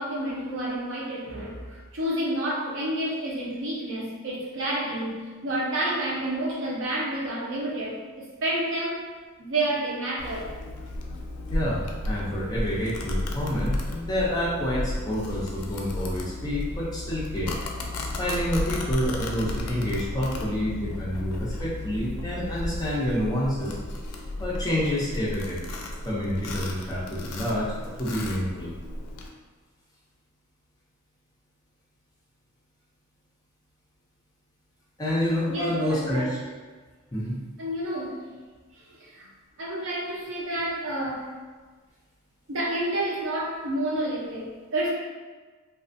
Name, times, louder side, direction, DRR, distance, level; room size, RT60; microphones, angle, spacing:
voice 1, 0.0-9.1 9.4-10.5 35.5-36.3 37.6-38.3 38.9-39.3 39.6-41.3 42.5-44.9, right 1 dB, 60° right, -4 dB, 0.6 m, -29 dB
Domestic sounds home sounds, 10.2-29.3, left 1 dB, 85° left, 0.4 m, -33 dB
voice 2, 11.5-17.6 18.2-23.8 24.4-25.6 26.0-28.7 35.0-36.4 37.1-37.4, equal, 15° left, -6 dB, 0.5 m, -28 dB
2.4 x 2.4 x 2.5 m, 1.4 s
head